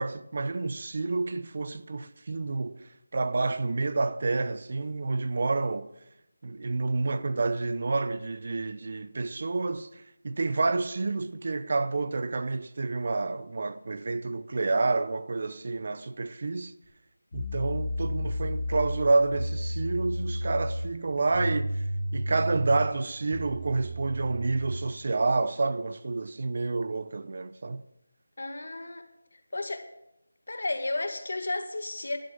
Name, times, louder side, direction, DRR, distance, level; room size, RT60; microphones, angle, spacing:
voice 1, 0.0-5.9 6.4-16.7 17.3-21.8 22.1-27.8, right 3 dB, 35° right, 0.5 m, -29 dB
sound 1, 16.8-16.9 17.3-24.8, equal, 35° left, 3.2 m, -33 dB
voice 2, 28.4-29.0 29.3-29.9 30.5-32.2, left 2 dB, 60° left, 1.9 m, -33 dB
11.5 x 11.0 x 6.5 m
figure-of-eight pair, 180°, 0 cm